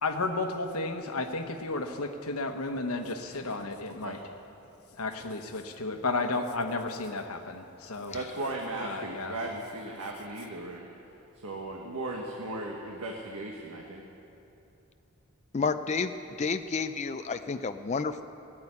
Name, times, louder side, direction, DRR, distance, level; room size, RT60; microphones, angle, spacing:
voice 1, 0.0-4.2 5.0-8.1 8.8-9.4, left 3 dB, 85° left, 6 dB, 1.2 m, -33 dB
voice 2, 8.1-10.9 11.3-14.0, right 2 dB, 85° right, 0 dB, 1.4 m, -37 dB
voice 3, 15.5-18.2, left 4 dB, 30° left, 9 dB, 0.4 m, -31 dB
16.5 x 8.7 x 9.7 m, 2.9 s
head